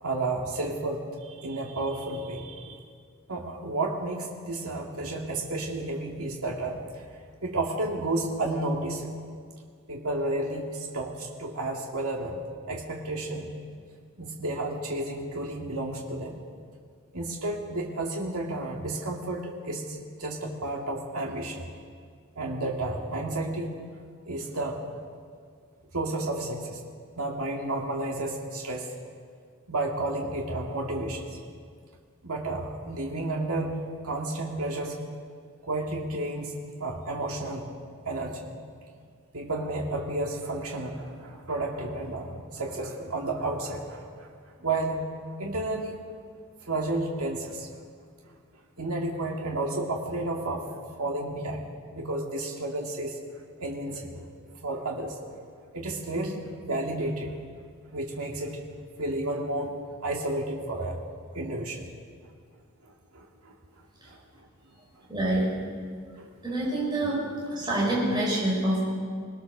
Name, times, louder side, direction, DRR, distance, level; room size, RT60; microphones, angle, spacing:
voice 1, 0.0-2.8 3.3-6.8 7.4-9.1 9.9-13.5 14.2-16.4 17.1-21.7 22.4-23.7 24.3-24.8 25.9-26.8 27.1-28.9 29.7-31.4 32.2-33.7 34.0-35.0 35.6-37.7 38.1-38.6 39.3-44.3 44.6-45.1 45.4-45.9 46.6-47.7 48.8-50.7 51.0-51.6 51.9-53.2 53.6-54.3 54.6-55.2 55.7-57.3 57.9-58.6 59.0-59.7 60.0-61.0 61.3-61.9 62.8-63.5 64.1-64.2 66.2-66.3, right 2 dB, 75° right, -1 dB, 2.2 m, -31 dB
voice 2, 65.1-65.5 66.4-67.2 67.5-68.9, right 1 dB, 20° right, -5 dB, 5.8 m, -26 dB
22.5 x 19.5 x 6.6 m, 2.1 s
head